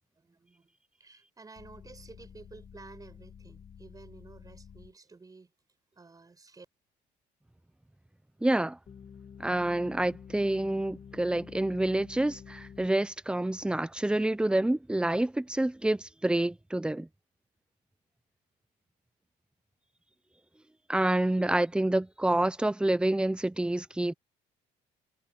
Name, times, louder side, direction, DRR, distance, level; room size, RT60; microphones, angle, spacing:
voice 1, 0.2-5.5 5.9-6.7, right 4 dB, 20° right, 5.8 m, -52 dB
sound 1, 1.6-4.9 8.9-12.9, left 7 dB, 40° left, 1.9 m, -50 dB
voice 2, 8.4-8.8 9.4-17.1 20.9-24.1, right 1 dB, 5° right, 0.9 m, -28 dB
cardioid pair, 110°, 17 cm